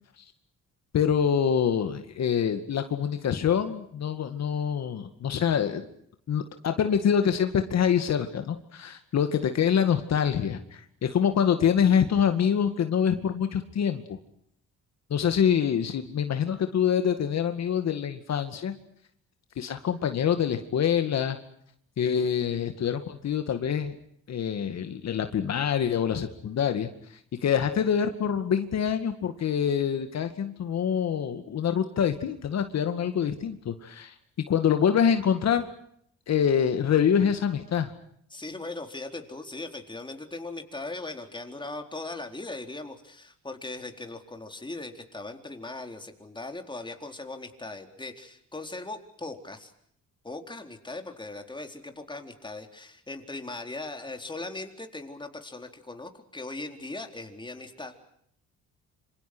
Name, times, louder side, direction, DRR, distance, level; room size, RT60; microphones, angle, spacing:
voice 1, 0.9-5.9 6.3-14.2 15.1-18.7 19.6-21.4 22.0-24.0 24.3-34.1 34.5-35.7 36.3-37.9, left 8 dB, 60° left, 7 dB, 2.2 m, -25 dB
voice 2, 38.3-49.7 50.2-57.9, left 2 dB, 15° left, 5 dB, 4.1 m, -39 dB
27.0 x 26.0 x 6.3 m, 0.68 s
cardioid pair, 90°, 30 cm